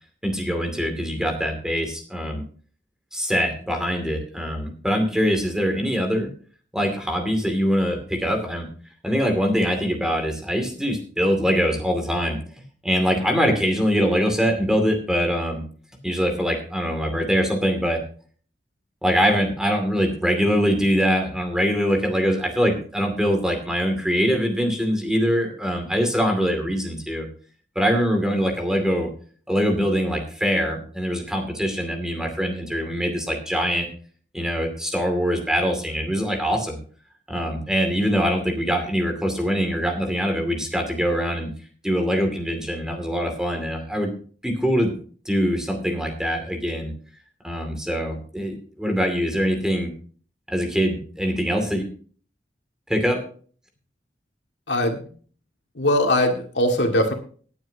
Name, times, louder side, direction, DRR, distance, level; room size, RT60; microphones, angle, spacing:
voice 1, 0.2-2.4 3.1-6.3 6.7-8.7 9.0-12.4 12.8-15.6 16.0-18.0 19.0-27.3 27.7-29.1 29.5-33.9 34.3-36.8 37.3-41.5 41.8-44.1 44.4-44.9 45.3-46.9 47.4-49.9 50.5-51.8 52.9-53.2, equal, 5° right, 4 dB, 2.5 m, -23 dB
voice 2, 54.7-55.1 55.7-57.1, left 1 dB, 85° left, 3 dB, 2.1 m, -21 dB
19.0 x 9.1 x 2.8 m, 0.43 s
head